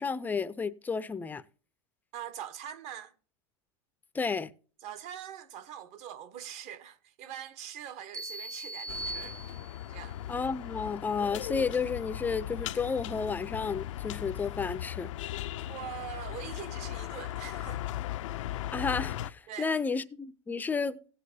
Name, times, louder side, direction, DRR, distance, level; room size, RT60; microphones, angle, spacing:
voice 1, 0.0-1.4 4.1-4.5 10.3-15.1 18.7-21.0, left 5 dB, 10° left, 0.5 m, -32 dB
voice 2, 2.1-3.1 4.8-9.4 9.9-10.2 15.6-17.8 19.5-19.8, right 10 dB, 45° right, 1.1 m, -43 dB
sound 1, 8.1-10.0, right 2 dB, 20° right, 0.7 m, -40 dB
sound 2, 8.9-19.3, left 13 dB, 90° left, 0.5 m, -38 dB
16.5 x 8.5 x 2.7 m
supercardioid pair, 140°, 16 cm